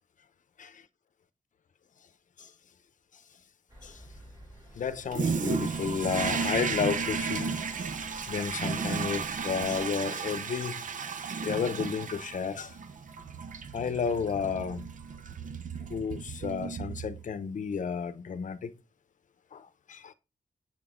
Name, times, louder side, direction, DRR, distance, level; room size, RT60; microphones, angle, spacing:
sound 1, 3.7-9.9, equal, 25° right, 3.6 m, -52 dB
voice 1, 4.7-8.0 8.3-11.0 11.4-12.8 13.7-14.8 15.9-18.7 19.5-20.1, left 6 dB, 60° left, 0.7 m, -32 dB
Toilet flush, 5.1-17.4, right 5 dB, 65° right, 0.7 m, -34 dB
7.5 x 6.1 x 3.7 m
wide cardioid pair, 170°, 14 cm